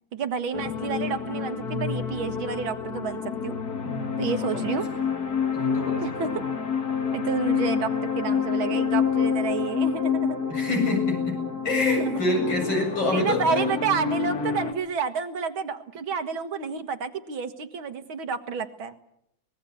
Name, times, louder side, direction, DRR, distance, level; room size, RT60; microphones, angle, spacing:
voice 1, 0.1-3.6 4.2-4.9 6.0-6.4 7.1-10.4 12.0-12.2 13.1-18.9, right 6 dB, 85° right, 8 dB, 2.4 m, -30 dB
sound 1, 0.5-14.7, left 7 dB, 50° left, 2.1 m, -28 dB
voice 2, 3.8-4.7 5.5-6.4 10.5-11.4 11.6-13.7, left 2 dB, 70° left, 2 dB, 8.7 m, -27 dB
24.5 x 20.5 x 8.3 m, 0.73 s
omnidirectional pair, 2.2 m